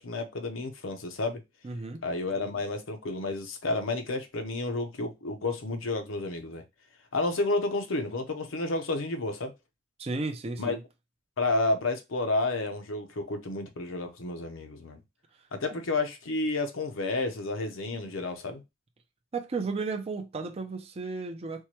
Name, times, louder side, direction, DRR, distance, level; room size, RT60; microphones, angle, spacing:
voice 1, 0.0-1.4 2.0-6.6 7.1-9.5 10.6-10.8 11.4-15.0 15.5-18.6, left 2 dB, 80° left, 0.7 m, -31 dB
voice 2, 1.6-2.0 10.0-10.8 19.3-21.6, right 3 dB, 30° right, 0.5 m, -34 dB
4.5 x 2.2 x 2.9 m
head